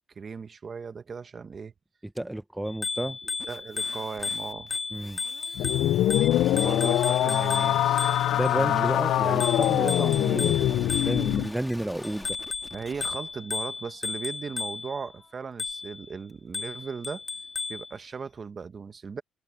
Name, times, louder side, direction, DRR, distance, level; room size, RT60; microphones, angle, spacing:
voice 1, 0.1-1.7 3.2-4.8 6.5-8.1 8.5-9.4 12.7-17.2 17.7-19.2, right 5 dB, 40° right, 1.4 m, -37 dB
voice 2, 2.2-3.2 4.9-5.2 8.3-12.3, right 1 dB, 10° right, 0.6 m, -31 dB
Bicycle bell, 2.7-8.5 9.4-11.5 12.0-15.0 15.6-16.0 16.5-17.9, left 4 dB, 35° left, 1.8 m, -34 dB
sound 1, 3.4-13.1, left 1 dB, 10° left, 1.7 m, -45 dB
sound 2, 5.6-11.5, left 13 dB, 85° left, 0.4 m, -24 dB
cardioid pair, 90°, 0 cm